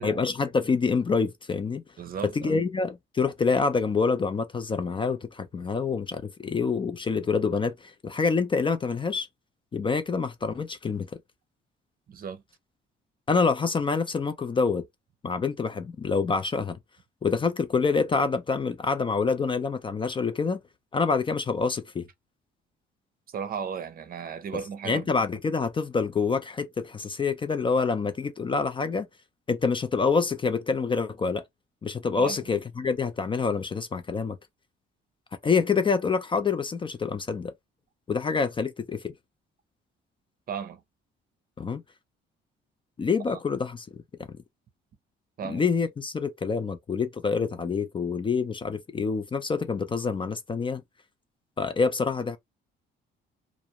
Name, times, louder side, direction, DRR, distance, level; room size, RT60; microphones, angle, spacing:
voice 1, 0.0-1.8 2.4-9.3 9.7-11.1 13.3-14.8 15.2-16.8 17.2-20.6 20.9-22.1 24.9-29.1 29.5-31.4 31.8-34.4 35.4-37.5 38.1-39.1 41.6-41.8 43.0-44.0 44.3-44.4 45.4-50.8 51.6-52.4, left 5 dB, 25° left, 0.4 m, -26 dB
voice 2, 2.0-2.6 12.1-12.4 23.3-25.2 32.2-32.4 40.5-40.8 43.3-43.4 45.4-45.6, right 6 dB, 45° right, 0.6 m, -35 dB
2.5 x 2.0 x 2.8 m
cardioid pair, 110°, 21 cm